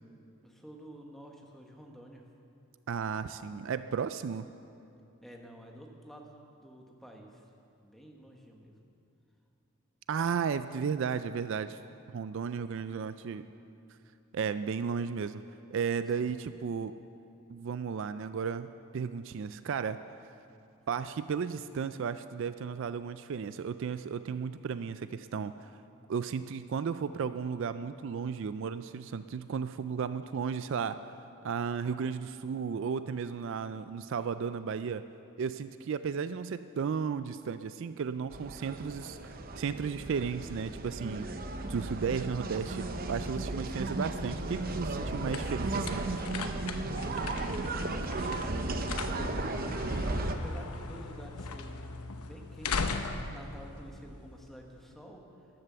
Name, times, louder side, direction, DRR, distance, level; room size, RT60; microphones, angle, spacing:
voice 1, 0.4-2.2 5.2-7.4 7.8-8.8 47.2-49.0 49.3-50.0 50.3-51.8 52.2-55.2, equal, ahead, 0 dB, 1.2 m, -50 dB
voice 2, 2.9-4.5 10.1-11.8 12.1-13.4 14.3-15.4 15.7-16.9 17.5-20.0 20.9-25.7 26.1-31.0 31.4-35.0 35.4-41.3 41.7-46.1, right 6 dB, 55° right, 12 dB, 0.3 m, -34 dB
sound 1, 38.3-50.4, right 2 dB, 40° right, 0.8 m, -35 dB
sound 2, 44.0-54.7, left 4 dB, 85° left, 0.9 m, -40 dB
13.5 x 11.0 x 6.8 m, 2.6 s
head